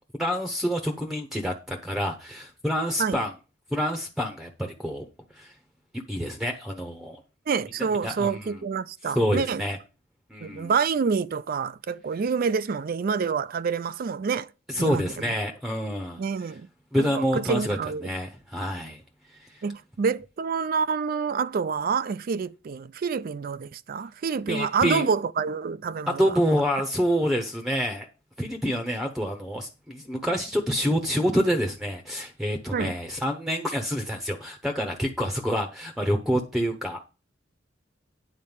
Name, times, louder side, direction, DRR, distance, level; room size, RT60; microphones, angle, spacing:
voice 1, 0.2-3.3 3.7-5.0 5.3-5.5 6.1-7.2 8.0-8.6 9.0-9.8 10.3-10.7 14.7-16.2 16.9-19.0 19.4-19.6 24.5-25.1 26.1-28.1 28.4-37.0, equal, ahead, 0.8 m, -27 dB
voice 2, 7.5-9.6 10.4-14.5 14.8-15.3 16.2-16.7 17.1-18.1 19.6-26.2 32.7-32.9, right 5 dB, 50° right, 0.4 m, -27 dB
9.5 x 4.2 x 7.2 m
head